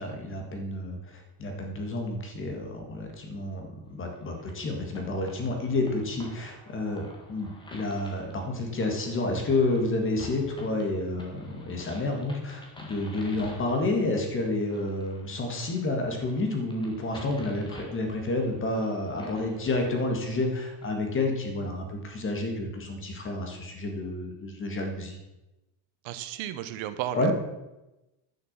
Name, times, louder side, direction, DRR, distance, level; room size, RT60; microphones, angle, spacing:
voice 1, 0.0-25.2 27.1-27.3, left 2 dB, 25° left, 3 dB, 1.8 m, -30 dB
sound 1, 4.1-20.9, left 1 dB, 10° left, 1.7 m, -48 dB
voice 2, 26.0-27.3, right 12 dB, 70° right, 11 dB, 1.0 m, -33 dB
10.5 x 6.4 x 7.4 m, 0.99 s
cardioid pair, 175°, 49 cm